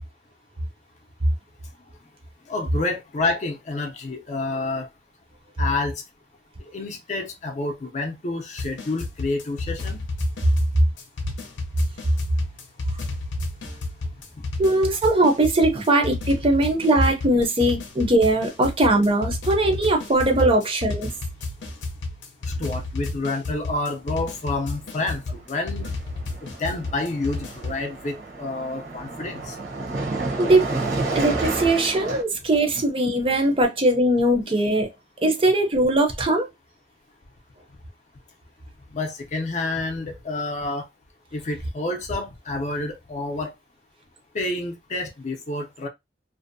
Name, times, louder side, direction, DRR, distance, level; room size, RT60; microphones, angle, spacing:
voice 1, 2.5-4.9 5.6-6.0 6.6-10.0 14.0-14.1 22.5-25.9 26.4-29.6 38.9-40.9 41.3-43.5 44.3-45.9, left 2 dB, 40° left, 0.5 m, -29 dB
sound 1, 8.6-27.8, left 3 dB, 90° left, 0.6 m, -32 dB
voice 2, 14.6-21.1 30.4-30.6 31.1-34.9 35.2-36.5, right 1 dB, 30° right, 0.5 m, -20 dB
Car passing by, 24.7-25.0 25.2-32.2, right 3 dB, 70° right, 0.8 m, -30 dB
2.6 x 2.0 x 2.5 m
head